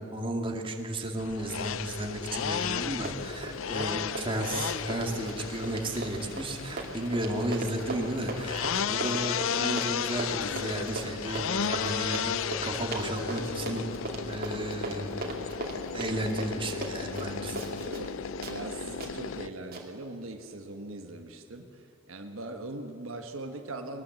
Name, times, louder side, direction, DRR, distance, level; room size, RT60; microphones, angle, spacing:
voice 1, 0.0-13.9 14.3-17.6, right 1 dB, 25° right, 2 dB, 2.1 m, -34 dB
sound 1, 1.2-19.5, left 7 dB, 65° left, 0.5 m, -34 dB
Run, 2.5-2.8 3.1-18.1 18.4-18.6 19.0-19.1 19.7-19.8, right 2 dB, 45° right, 2.7 m, -38 dB
Toilet flush, 4.4-11.9, right 1 dB, 5° left, 7.3 m, -54 dB
voice 2, 17.8-18.2 18.4-24.0, right 2 dB, 70° right, 5 dB, 1.3 m, -41 dB
21.5 x 19.0 x 7.8 m, 2.5 s
head